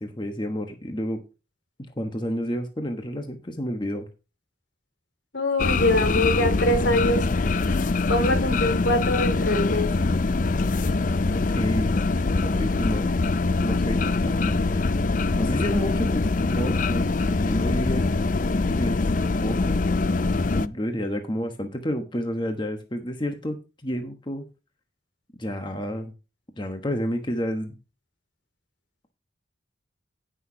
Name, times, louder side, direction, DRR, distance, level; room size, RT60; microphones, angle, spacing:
voice 1, 0.0-1.2 2.0-4.1 11.3-11.9 12.4-13.1 13.6-14.9 15.4-16.3 16.5-17.1 17.4-18.1 18.8-19.1 19.4-19.8 20.5-24.5 25.4-26.1 26.6-27.8, equal, 25° left, 1.2 m, -30 dB
voice 2, 5.3-7.2 8.1-9.9, left 1 dB, 75° left, 2.7 m, -23 dB
sound 1, 5.6-20.7, left 3 dB, 45° left, 0.5 m, -23 dB
17.5 x 6.2 x 2.8 m
head